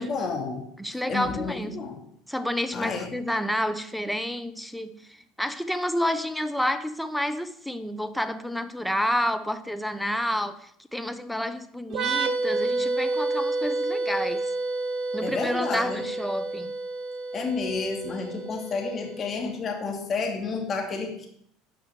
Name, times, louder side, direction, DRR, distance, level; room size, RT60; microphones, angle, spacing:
voice 1, 0.0-0.6 1.1-2.0 2.7-3.1 15.2-16.0 17.3-21.3, left 4 dB, 35° left, 2.7 m, -30 dB
voice 2, 0.8-1.8 2.3-14.5 15.1-16.7, equal, ahead, 0.9 m, -29 dB
sound 1, 11.9-19.4, right 3 dB, 55° right, 1.4 m, -29 dB
10.0 x 6.0 x 6.4 m
hypercardioid pair, 90°, 0 cm